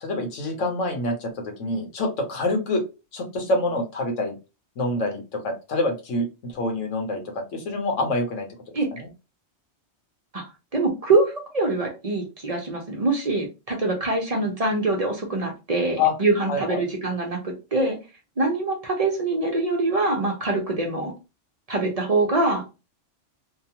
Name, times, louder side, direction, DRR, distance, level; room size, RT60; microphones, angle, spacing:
voice 1, 0.0-2.8 3.1-4.4 4.8-7.2 7.5-8.5 8.9-9.1 16.0-16.1 16.5-16.8, left 2 dB, 80° left, 3 dB, 1.2 m, -26 dB
voice 2, 10.7-18.0 18.4-21.1 21.7-22.6, right 2 dB, 40° right, 1 dB, 0.6 m, -24 dB
2.8 x 2.3 x 2.8 m, 0.28 s
omnidirectional pair, 1.3 m